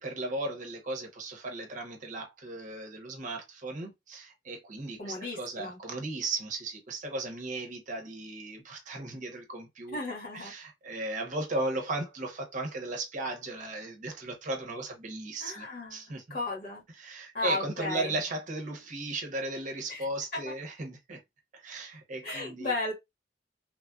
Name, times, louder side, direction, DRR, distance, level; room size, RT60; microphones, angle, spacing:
voice 1, 0.0-10.0 10.3-16.4 16.9-21.2 21.5-22.7, right 2 dB, 45° right, 0.8 m, -36 dB
voice 2, 5.0-5.8 9.9-10.5 15.4-16.0 16.3-16.8 17.3-18.1 19.9-20.0 20.3-20.5 22.2-22.9, left 2 dB, 55° left, 1.5 m, -34 dB
3.1 x 2.5 x 2.2 m
head